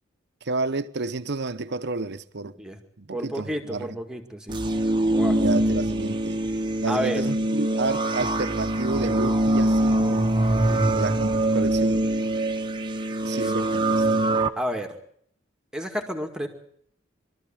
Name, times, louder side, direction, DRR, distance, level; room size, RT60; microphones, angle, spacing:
voice 1, 0.4-2.5 3.0-4.0 5.3-6.4 6.8-10.3 10.9-12.1 13.2-14.0, right 3 dB, 60° right, 1.0 m, -30 dB
voice 2, 3.1-4.6 5.1-5.4 6.9-7.3 10.1-10.2 10.7-10.8 13.4-13.5 14.6-14.9 15.7-16.5, equal, 5° right, 2.1 m, -30 dB
sound 1, 4.5-14.5, right 1 dB, 25° right, 1.2 m, -23 dB
23.0 x 13.5 x 8.9 m
head